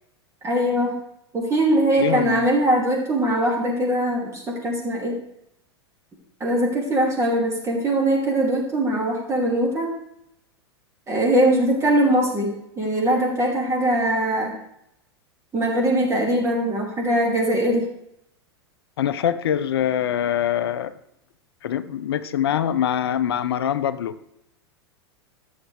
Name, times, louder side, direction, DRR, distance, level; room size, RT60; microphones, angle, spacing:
voice 1, 0.4-1.0 1.3-5.2 6.4-9.9 11.1-14.5 15.5-17.9, right 1 dB, 20° right, -2 dB, 2.7 m, -21 dB
voice 2, 2.0-2.5 19.0-20.9 21.6-24.2, left 10 dB, 65° left, 13 dB, 0.6 m, -24 dB
13.5 x 7.2 x 3.4 m, 0.77 s
figure-of-eight pair, 90°, 14 cm